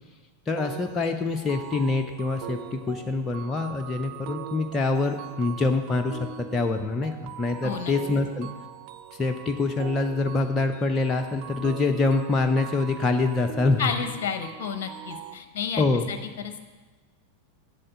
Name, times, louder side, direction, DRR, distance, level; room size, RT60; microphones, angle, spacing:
voice 1, 0.5-8.5 9.1-13.9 15.8-16.1, left 3 dB, 20° left, 3 dB, 0.6 m, -25 dB
sound 1, 0.6-15.3, right 10 dB, 45° right, 0.5 m, -41 dB
voice 2, 7.6-7.9 13.8-16.6, left 6 dB, 50° left, 8 dB, 0.8 m, -31 dB
7.7 x 7.4 x 7.7 m, 1.3 s
figure-of-eight pair, 90°, 0 cm